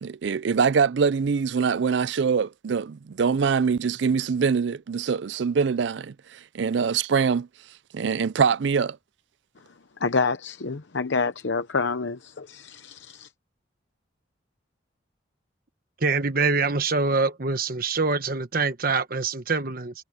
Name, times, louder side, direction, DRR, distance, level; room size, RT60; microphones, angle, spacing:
voice 1, 0.0-7.5 7.9-9.0, right 6 dB, 65° right, 0.4 m, -24 dB
voice 2, 10.0-13.3, left 4 dB, 65° left, 0.8 m, -27 dB
voice 3, 16.0-19.9, right 4 dB, 45° right, 1.2 m, -24 dB
head